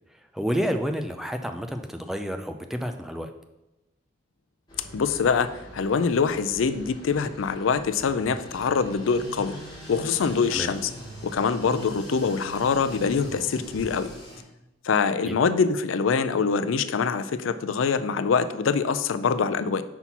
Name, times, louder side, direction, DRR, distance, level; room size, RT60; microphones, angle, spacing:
voice 1, 0.3-3.3 10.5-10.7 15.2-15.4, equal, ahead, 6 dB, 0.4 m, -29 dB
sound 1, 4.7-14.4, equal, 20° left, 2.2 m, -42 dB
voice 2, 4.9-9.5 9.9-10.9 11.2-14.1 14.8-19.8, left 5 dB, 90° left, 12 dB, 0.4 m, -24 dB
5.6 x 4.2 x 5.9 m, 0.95 s
head